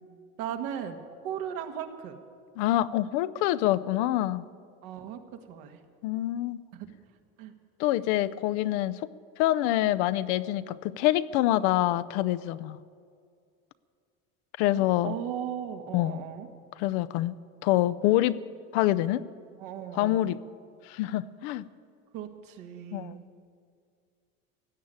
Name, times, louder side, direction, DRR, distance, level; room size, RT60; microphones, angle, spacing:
voice 1, 0.4-2.2 4.8-5.2 5.5-5.8 6.7-6.9 7.4-7.5 14.7-16.5 19.6-20.3 22.1-23.2, right 9 dB, 75° right, 5 dB, 1.6 m, -37 dB
voice 2, 2.6-4.5 6.0-6.6 7.8-9.0 9.4-12.8 14.6-15.1 15.9-16.2 16.8-17.4 17.6-18.4 18.7-19.2 20.0-20.4 20.9-21.6 22.9-23.1, left 14 dB, 75° left, 16 dB, 0.6 m, -26 dB
16.5 x 9.3 x 8.8 m, 2.3 s
supercardioid pair, 110°, 33 cm